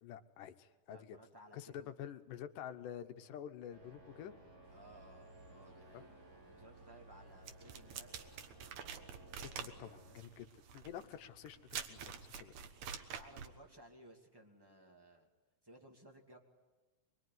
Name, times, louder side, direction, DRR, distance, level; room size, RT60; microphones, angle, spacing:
voice 1, 0.0-1.2 1.5-4.4 5.9-6.0 9.4-10.5 10.7-12.5, left 9 dB, 80° left, 9 dB, 2.5 m, -48 dB
voice 2, 0.9-1.9 4.7-6.1 6.5-8.1 13.1-15.3 15.6-16.4, right 1 dB, 10° right, 1 dB, 2.1 m, -59 dB
sound 1, 3.7-10.2, right 1 dB, 50° right, 6.4 m, -58 dB
sound 2, 4.6-13.8, right 4 dB, 80° right, 5.4 m, -69 dB
sound 3, 7.5-13.6, right 7 dB, 65° right, 2.5 m, -47 dB
24.0 x 23.0 x 9.5 m, 1.2 s
omnidirectional pair, 3.8 m